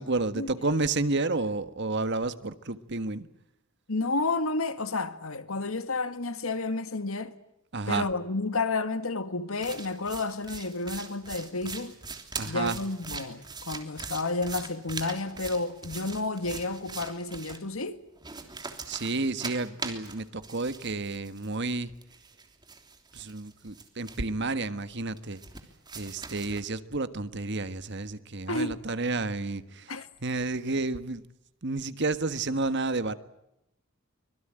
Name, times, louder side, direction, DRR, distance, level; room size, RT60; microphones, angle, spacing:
voice 1, 0.0-3.3 7.7-8.1 12.4-12.8 18.9-21.9 23.1-25.4 25.9-31.2 31.6-33.1, right 3 dB, 55° right, 1.5 m, -31 dB
voice 2, 3.9-7.3 7.9-11.9 12.5-18.0 28.5-28.8 29.9-30.1, left 3 dB, 85° left, 2.1 m, -31 dB
sound 1, 9.5-17.6 18.2-21.7 22.0-24.4 25.2-26.6, right 4 dB, 20° right, 3.2 m, -41 dB
25.0 x 22.5 x 9.0 m
head